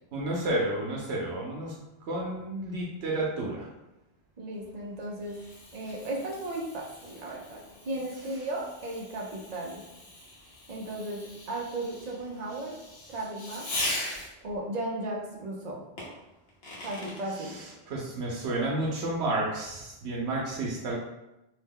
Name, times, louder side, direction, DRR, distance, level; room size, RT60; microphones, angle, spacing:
voice 1, 0.1-1.7 2.1-3.7 17.3-21.0, right 2 dB, 90° right, -3 dB, 0.9 m, -31 dB
voice 2, 4.4-5.4 5.7-7.6 7.9-9.8 10.7-12.7 13.1-13.7 14.4-15.8 16.8-17.6, right 1 dB, 45° right, -1 dB, 0.6 m, -35 dB
Fireworks, 4.6-14.6 16.0-17.2, left 1 dB, 70° left, 1.0 m, -40 dB
2.8 x 2.1 x 3.5 m, 0.94 s
omnidirectional pair, 1.1 m